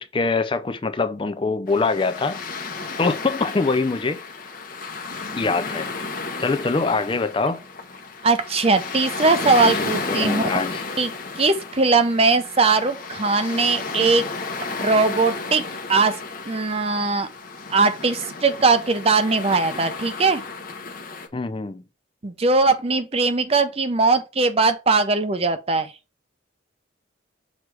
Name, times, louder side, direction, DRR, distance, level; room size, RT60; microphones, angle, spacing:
voice 1, 0.0-2.4 3.0-4.2 5.3-5.9 6.4-7.6 9.4-10.8 21.3-21.8, left 3 dB, 25° left, 0.4 m, -24 dB
sound 1, 1.7-21.3, left 4 dB, 45° left, 0.9 m, -33 dB
voice 2, 8.2-10.4 11.0-14.3 14.8-15.6 15.9-16.2 16.5-17.3 17.7-20.4 22.2-25.9, right 3 dB, 30° right, 0.6 m, -20 dB
6.2 x 3.2 x 4.7 m
head